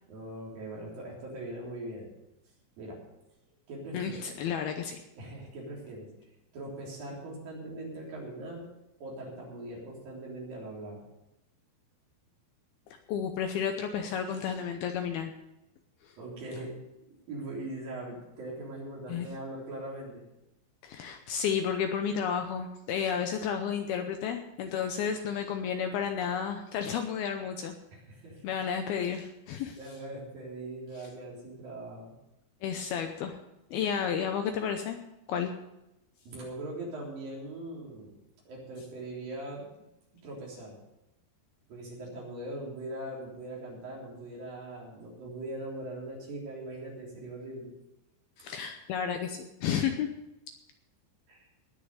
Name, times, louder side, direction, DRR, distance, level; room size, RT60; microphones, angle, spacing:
voice 1, 0.1-2.1 2.8-3.0 3.7-4.2 5.2-6.1 6.5-8.7 9.0-11.0 16.2-16.8 17.3-20.2 27.9-28.4 29.8-32.1 36.3-38.2 38.5-39.7 40.2-40.8 41.7-47.7 51.3-51.5, right 1 dB, 55° right, -3 dB, 5.2 m, -41 dB
voice 2, 3.9-5.0 13.1-15.3 16.0-16.2 19.1-19.3 20.8-27.8 28.4-29.8 32.6-33.4 33.7-35.0 35.3-35.5 48.4-50.1, left 7 dB, 75° left, 6 dB, 2.4 m, -32 dB
19.5 x 6.8 x 6.6 m, 0.90 s
omnidirectional pair, 5.1 m